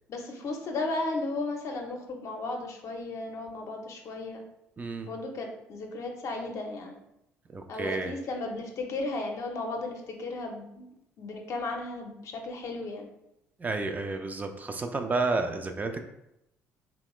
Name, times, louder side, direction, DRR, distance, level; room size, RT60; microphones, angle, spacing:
voice 1, 0.1-4.4 5.0-6.9 7.7-10.9 11.2-13.1, left 2 dB, 55° left, 2 dB, 0.6 m, -35 dB
voice 2, 4.8-5.1 7.5-8.1 13.6-16.0, right 3 dB, 25° right, 5 dB, 0.3 m, -31 dB
2.9 x 2.1 x 3.0 m, 0.84 s
hypercardioid pair, 60°, 6 cm